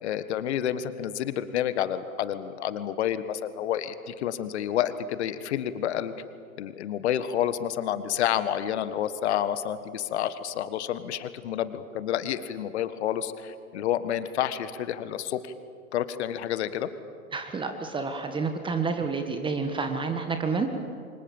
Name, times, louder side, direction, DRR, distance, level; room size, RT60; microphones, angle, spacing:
voice 1, 0.0-6.1 6.6-15.5 15.9-16.9, left 10 dB, 50° left, 12 dB, 1.6 m, -29 dB
voice 2, 17.3-20.7, right 4 dB, 10° right, 6 dB, 1.5 m, -29 dB
29.0 x 25.0 x 7.3 m, 2.3 s
figure-of-eight pair, 115°, 42 cm